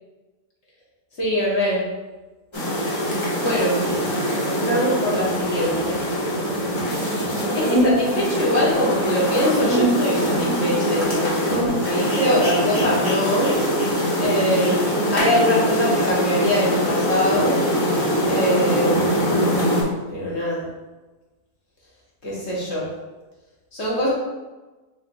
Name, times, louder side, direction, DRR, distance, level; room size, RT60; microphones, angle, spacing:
voice 1, 1.2-1.8 3.4-3.8 4.6-6.0 7.5-13.5 14.2-17.5 18.3-19.1 20.1-20.7 22.2-22.9 23.7-24.1, equal, 45° left, -6 dB, 1.3 m, -23 dB
sound 1, 2.5-19.8, equal, 25° left, 0.8 m, -22 dB
6.1 x 2.8 x 2.6 m, 1.2 s
omnidirectional pair, 1.7 m